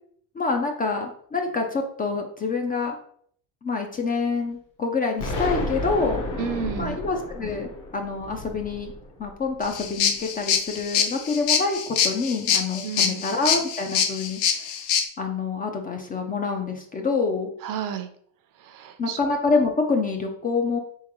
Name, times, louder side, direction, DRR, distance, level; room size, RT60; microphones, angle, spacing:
voice 1, 0.3-3.0 3.6-6.2 6.8-8.9 9.2-11.8 12.0-14.7 15.2-17.5 19.0-20.8, left 4 dB, 20° left, 3 dB, 0.4 m, -26 dB
Explosion, 5.2-10.0, left 2 dB, 45° left, 1.1 m, -32 dB
voice 2, 6.4-7.0 12.8-13.2 17.6-18.1 18.6-19.2, right 8 dB, 50° right, 8 dB, 0.6 m, -31 dB
sound 1, 9.6-15.0, left 7 dB, 70° left, 0.8 m, -24 dB
3.9 x 3.7 x 3.0 m, 0.62 s
supercardioid pair, 115°, 43 cm